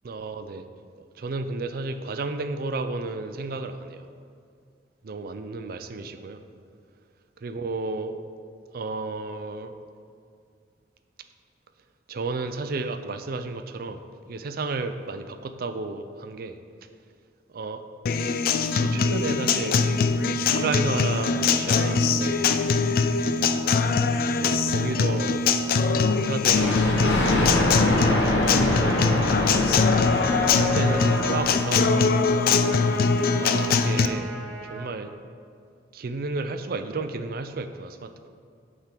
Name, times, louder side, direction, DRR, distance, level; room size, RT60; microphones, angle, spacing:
voice 1, 0.0-0.6 1.1-4.1 5.0-6.4 7.4-8.2 8.7-9.7 12.1-14.0 14.3-16.6 17.5-17.8 18.7-19.9 20.6-22.8 24.3-25.4 25.9-27.8 28.1-32.5 33.1-35.2 35.9-38.3, right 3 dB, 55° right, 9 dB, 0.5 m, -32 dB
Acoustic guitar, 18.1-34.1, left 4 dB, 55° left, 0.4 m, -22 dB
Thunder, 26.5-31.8, left 1 dB, 85° left, 1.2 m, -25 dB
Trumpet, 29.9-34.9, right 1 dB, 5° left, 1.6 m, -37 dB
8.7 x 3.7 x 5.8 m, 2.3 s
head